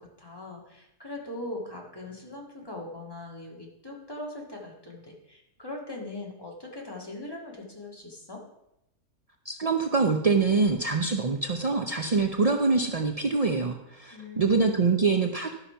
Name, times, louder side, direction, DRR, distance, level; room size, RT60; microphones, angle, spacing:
voice 1, 0.0-8.4 14.1-14.8, left 2 dB, 15° left, -1 dB, 1.8 m, -40 dB
voice 2, 9.5-15.5, right 4 dB, 60° right, 4 dB, 0.3 m, -25 dB
12.0 x 5.7 x 5.6 m, 0.84 s
omnidirectional pair, 1.5 m